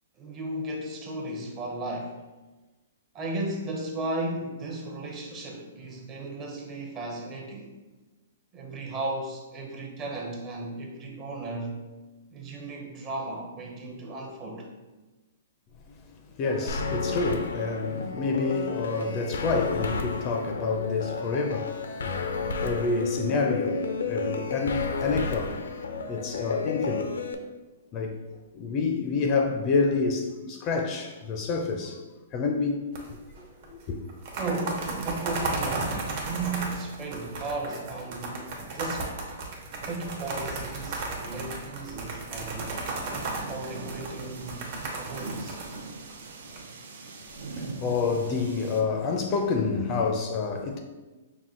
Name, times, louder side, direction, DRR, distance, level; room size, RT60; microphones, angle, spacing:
voice 1, 0.2-2.2 3.1-7.7 8.5-11.8 12.3-14.7 34.4-39.2 39.8-42.8 43.5-45.6 49.7-50.0, right 2 dB, 25° right, 0.7 m, -35 dB
voice 2, 16.1-25.7 26.1-27.2 27.9-28.2 28.5-32.0 32.3-34.0 47.5-50.8, left 4 dB, 30° left, 0.4 m, -28 dB
sound 1, 16.7-27.3, left 4 dB, 85° left, 0.5 m, -32 dB
sound 2, 33.0-33.4 33.6-33.7 34.1-46.6, right 3 dB, 45° right, 1.0 m, -34 dB
sound 3, 43.1-48.8, right 3 dB, 70° right, 0.6 m, -41 dB
5.8 x 2.2 x 3.7 m
hypercardioid pair, 150°, 0 cm